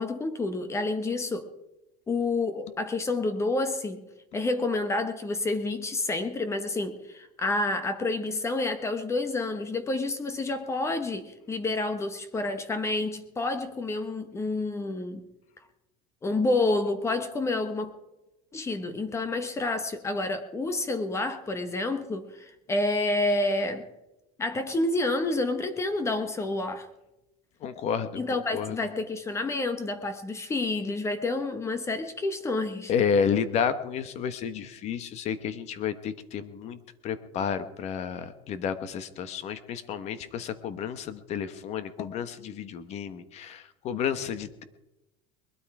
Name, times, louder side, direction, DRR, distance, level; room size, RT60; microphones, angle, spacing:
voice 1, 0.0-1.5 2.1-4.0 4.3-15.2 16.2-17.9 18.5-23.9 24.4-26.9 28.2-32.9, left 2 dB, 15° left, 10 dB, 1.1 m, -29 dB
voice 2, 27.6-28.2 28.5-28.8 32.9-44.6, left 7 dB, 40° left, 12 dB, 1.2 m, -31 dB
21.0 x 12.5 x 4.9 m, 0.95 s
cardioid pair, 160°, 18 cm